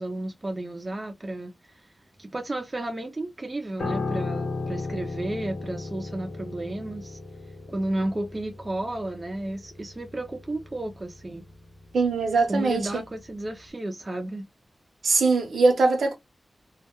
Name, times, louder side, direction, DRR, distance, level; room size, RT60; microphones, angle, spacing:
voice 1, 0.0-1.9 2.2-7.2 7.7-11.4 12.5-14.5, right 1 dB, 25° right, 0.3 m, -32 dB
Piano, 3.8-13.2 13.4-13.7, left 3 dB, 65° left, 0.7 m, -36 dB
voice 2, 11.9-13.0 15.0-16.2, right 3 dB, 85° right, 0.6 m, -22 dB
2.1 x 2.1 x 2.8 m
wide cardioid pair, 155°, 0 cm